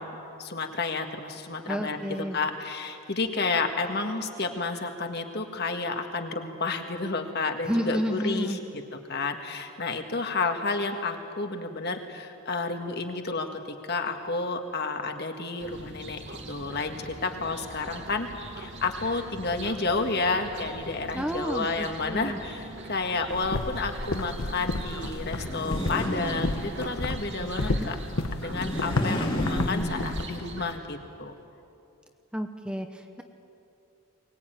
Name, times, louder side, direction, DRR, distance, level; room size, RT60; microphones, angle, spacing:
voice 1, 0.0-8.8 9.1-18.3 18.6-28.0 28.4-31.3, left 3 dB, 50° left, 5 dB, 1.8 m, -31 dB
voice 2, 1.7-2.4 7.7-8.6 21.1-22.4 27.4-27.9 32.3-33.2, equal, 5° right, 5 dB, 0.9 m, -31 dB
sound 1, 15.6-30.7, right 2 dB, 55° right, 2.7 m, -42 dB
sound 2, 23.3-30.2, left 2 dB, 70° left, 1.2 m, -32 dB
sound 3, 25.4-27.1 28.4-30.6, equal, 25° left, 2.3 m, -32 dB
23.5 x 20.0 x 9.3 m, 2.7 s
head